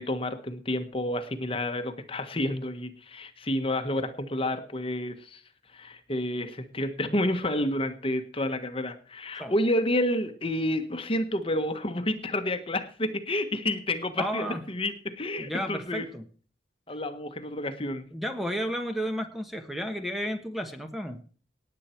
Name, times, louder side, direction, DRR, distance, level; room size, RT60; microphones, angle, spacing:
voice 1, 0.0-5.4 5.7-16.1 16.9-18.1, left 1 dB, 30° left, 8 dB, 1.4 m, -30 dB
voice 2, 14.2-14.6 15.4-16.2 18.1-21.2, equal, ahead, 6 dB, 1.3 m, -32 dB
18.5 x 8.4 x 4.5 m, 0.42 s
head